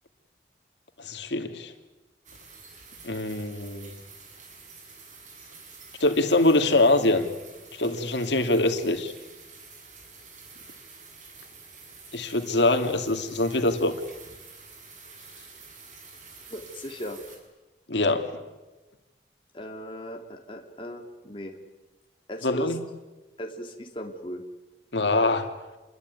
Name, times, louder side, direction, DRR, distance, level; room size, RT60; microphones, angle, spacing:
voice 1, 1.0-1.7 3.0-3.9 6.0-7.3 7.8-9.1 12.1-13.9 17.9-18.3 22.4-22.8 24.9-25.5, left 2 dB, 90° left, 6 dB, 2.6 m, -23 dB
sound 1, 2.2-17.4, right 4 dB, 45° right, 7.1 m, -48 dB
voice 2, 15.1-15.5 16.5-17.2 19.5-21.6 22.3-22.7 23.4-24.4, equal, 30° left, 2 dB, 3.0 m, -38 dB
28.0 x 22.0 x 9.6 m, 1.1 s
head